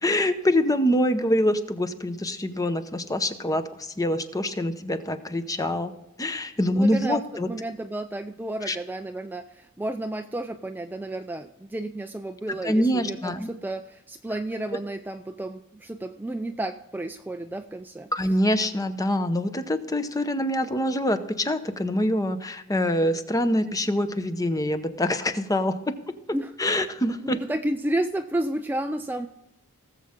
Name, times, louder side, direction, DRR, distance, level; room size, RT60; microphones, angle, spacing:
voice 1, 0.0-5.9 6.2-7.5 8.6-8.8 12.5-13.5 18.1-25.9 26.6-27.4, left 1 dB, 15° left, 10 dB, 0.8 m, -25 dB
voice 2, 6.7-7.2 7.5-18.1 26.3-26.9 27.5-29.3, right 1 dB, 10° right, 6 dB, 0.4 m, -31 dB
18.5 x 7.5 x 3.7 m, 0.90 s
head